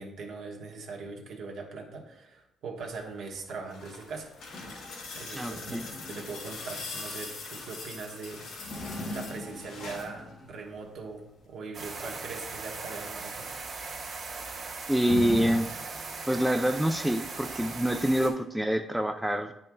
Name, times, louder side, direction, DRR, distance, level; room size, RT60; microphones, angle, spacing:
voice 1, 0.0-4.3 5.1-8.5 9.1-13.5, right 4 dB, 75° right, 0 dB, 1.3 m, -41 dB
sound 1, 3.4-10.2 11.4-11.5, left 3 dB, 80° left, 2.1 m, -42 dB
sound 2, 4.4-7.6 8.6-10.8 15.1-15.6, left 1 dB, 35° left, 0.8 m, -40 dB
voice 2, 5.3-5.8 14.9-15.7 16.3-19.5, equal, 5° right, 5 dB, 0.5 m, -26 dB
sound 3, 11.7-18.3, right 4 dB, 55° right, 1.8 m, -39 dB
9.3 x 5.4 x 2.3 m, 0.84 s
cardioid pair, 90°, 0 cm